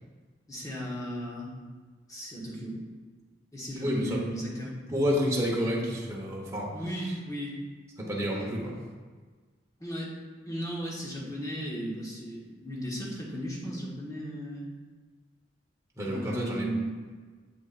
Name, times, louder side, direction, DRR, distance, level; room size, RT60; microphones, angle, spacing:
voice 1, 0.5-1.5 2.1-2.8 3.5-4.7 6.7-7.5 9.8-10.1 10.5-14.6 16.0-16.9, equal, 20° left, -5 dB, 1.4 m, -36 dB
voice 2, 3.8-4.2 4.9-6.7 8.0-8.8 16.0-16.7, equal, 15° right, -4 dB, 1.1 m, -29 dB
7.8 x 5.8 x 2.5 m, 1.5 s
head